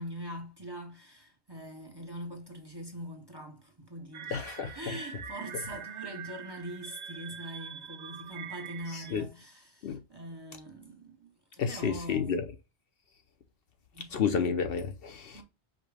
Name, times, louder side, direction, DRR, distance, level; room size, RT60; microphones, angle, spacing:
voice 1, 0.0-4.5 4.7-12.4 13.9-14.2 15.3-15.4, equal, 25° right, 0.8 m, -43 dB
sound 1, 4.1-9.2, right 8 dB, 55° right, 0.5 m, -44 dB
voice 2, 4.3-5.0 8.9-9.3 9.8-10.0 11.6-12.5 14.1-15.4, left 6 dB, 65° left, 0.7 m, -31 dB
5.3 x 2.2 x 4.6 m
omnidirectional pair, 1.1 m